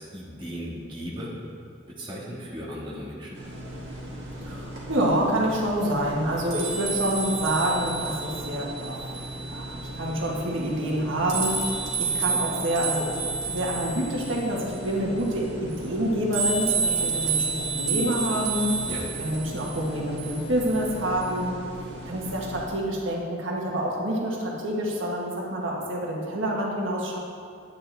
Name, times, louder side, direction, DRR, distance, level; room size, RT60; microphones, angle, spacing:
voice 1, 0.0-1.4 2.0-3.3 18.9-19.0, equal, 25° right, -6 dB, 1.7 m, -36 dB
Wind Chimes, 3.4-22.6, right 4 dB, 60° right, 2.1 m, -31 dB
voice 2, 4.4-9.2 9.5-13.1 13.5-18.8 19.2-21.6 22.0-27.2, right 1 dB, 80° right, -2 dB, 1.5 m, -27 dB
9.8 x 9.6 x 3.4 m, 2.4 s
head